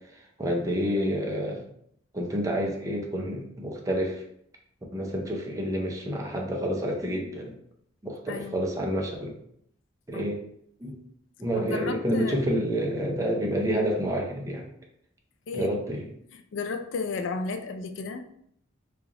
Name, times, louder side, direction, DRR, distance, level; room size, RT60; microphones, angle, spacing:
voice 1, 0.4-1.6 2.1-4.2 4.9-7.5 8.0-9.3 10.1-10.4 10.8-11.0 11.4-14.7 15.5-16.1, equal, 15° right, 0.5 m, -28 dB
voice 2, 8.3-8.6 10.1-10.2 11.6-12.4 15.5-15.7 16.5-18.3, left 4 dB, 70° left, 0.3 m, -33 dB
3.3 x 2.4 x 3.7 m
head